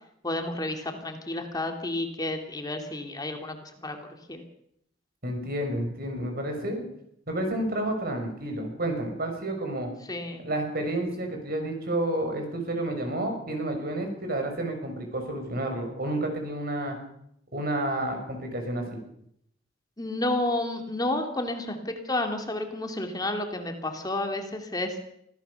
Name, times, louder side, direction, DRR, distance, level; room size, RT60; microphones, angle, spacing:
voice 1, 0.2-3.6 3.8-4.0 4.3-4.4 10.1-10.5 20.0-25.0, left 2 dB, 20° left, 4 dB, 2.4 m, -31 dB
voice 2, 5.2-6.8 7.3-9.9 10.4-17.0 17.5-19.0, right 1 dB, 55° right, 4 dB, 6.2 m, -30 dB
25.0 x 16.5 x 6.9 m, 0.72 s
head